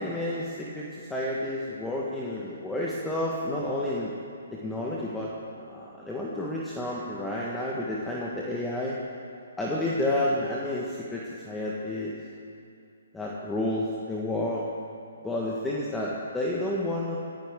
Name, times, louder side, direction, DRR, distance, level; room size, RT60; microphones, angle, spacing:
voice 1, 0.0-4.1 4.5-5.3 5.6-9.0 9.6-12.2 13.1-14.7 15.2-17.2, left 1 dB, 5° left, -5 dB, 1.5 m, -30 dB
15.5 x 15.5 x 3.8 m, 2.5 s
hypercardioid pair, 140°, 0 cm